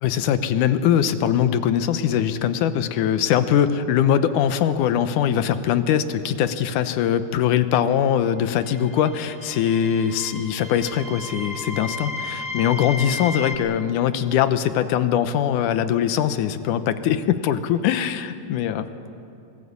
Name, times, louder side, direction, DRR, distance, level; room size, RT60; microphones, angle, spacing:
voice 1, 0.0-18.9, left 9 dB, 80° left, 11 dB, 2.4 m, -22 dB
sound 1, 8.7-13.6, left 3 dB, 10° right, 0.7 m, -34 dB
25.0 x 18.5 x 8.4 m, 2.6 s
omnidirectional pair, 3.7 m